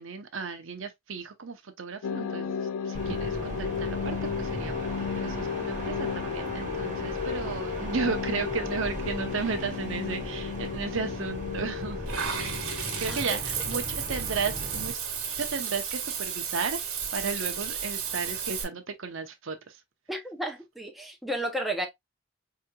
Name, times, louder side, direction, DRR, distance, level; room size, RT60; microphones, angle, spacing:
voice 1, 0.0-4.9 5.1-12.1 12.7-15.0 15.4-16.8 17.1-19.8, right 5 dB, 65° right, 0.7 m, -34 dB
sound 1, 2.0-13.8, left 6 dB, 75° left, 0.4 m, -34 dB
sound 2, 2.9-14.9, equal, 35° right, 1.1 m, -38 dB
Water / Bathtub (filling or washing), 12.1-18.6, right 7 dB, 85° right, 1.3 m, -33 dB
voice 2, 20.1-21.9, right 1 dB, ahead, 0.6 m, -32 dB
4.8 x 2.8 x 2.2 m
head